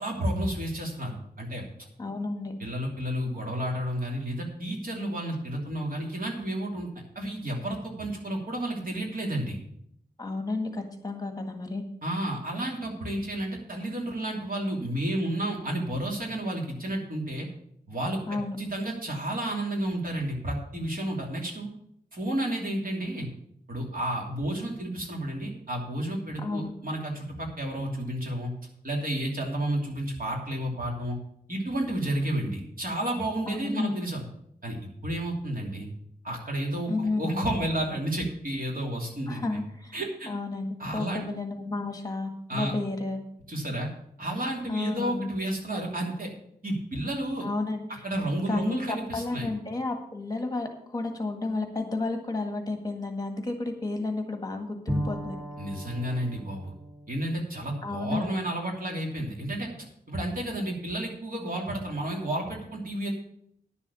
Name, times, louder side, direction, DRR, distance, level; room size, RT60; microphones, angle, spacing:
voice 1, 0.0-1.6 2.6-6.9 7.1-9.6 12.0-17.5 17.9-21.7 22.1-23.3 23.7-28.5 28.8-31.2 31.5-34.2 34.6-35.9 36.2-39.6 39.9-40.3 40.8-41.2 42.5-42.7 43.5-43.9 44.2-46.3 46.6-47.5 48.0-49.5 55.6-56.7 57.1-63.1, right 1 dB, 60° right, 0 dB, 2.9 m, -31 dB
voice 2, 2.0-2.5 10.2-11.8 18.3-18.6 26.4-26.7 33.5-34.0 36.9-37.5 39.3-40.0 40.3-43.2 44.7-45.3 47.4-48.0 48.5-55.4 57.8-58.4, left 3 dB, 25° left, 4 dB, 1.7 m, -32 dB
Bowed string instrument, 54.9-58.6, equal, 5° right, 1.6 m, -37 dB
10.5 x 7.1 x 6.9 m, 0.71 s
wide cardioid pair, 115°, 16 cm